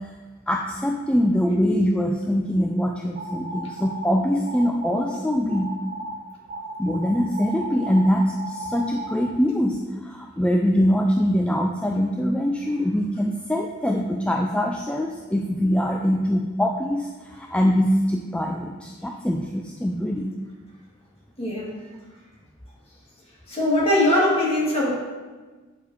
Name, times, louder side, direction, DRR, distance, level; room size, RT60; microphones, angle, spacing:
voice 1, 0.5-5.8 6.8-20.3, equal, 5° left, 1 dB, 0.3 m, -23 dB
sound 1, 3.1-4.1 4.5-5.1 5.5-6.1 6.5-9.2, right 2 dB, 35° right, 0.8 m, -35 dB
voice 2, 21.4-21.7 23.5-24.9, left 1 dB, 30° left, -5 dB, 2.0 m, -21 dB
8.0 x 5.3 x 4.0 m, 1.3 s
head